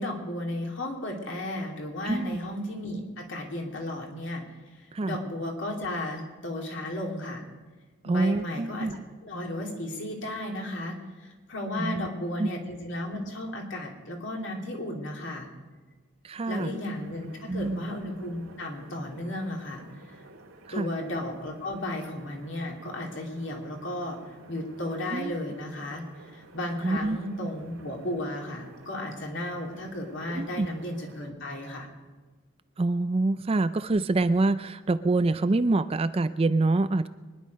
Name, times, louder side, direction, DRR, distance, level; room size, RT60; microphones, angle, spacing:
voice 1, 0.0-4.4 4.7-7.4 8.0-8.9 9.2-15.5 16.5-20.2 20.7-24.2 24.5-26.0 26.3-31.9, left 1 dB, 60° left, 1 dB, 2.7 m, -34 dB
voice 2, 2.0-2.4 4.9-5.2 8.0-9.0 11.8-12.1 12.4-12.5 16.2-16.8 17.5-17.8 20.8-20.9 25.1-25.4 26.8-27.2 30.3-30.7 32.8-37.1, right 2 dB, 25° right, 12 dB, 0.4 m, -26 dB
sound 1, 16.6-31.3, right 2 dB, 70° right, 1.8 m, -52 dB
24.0 x 10.5 x 5.3 m, 1.4 s
head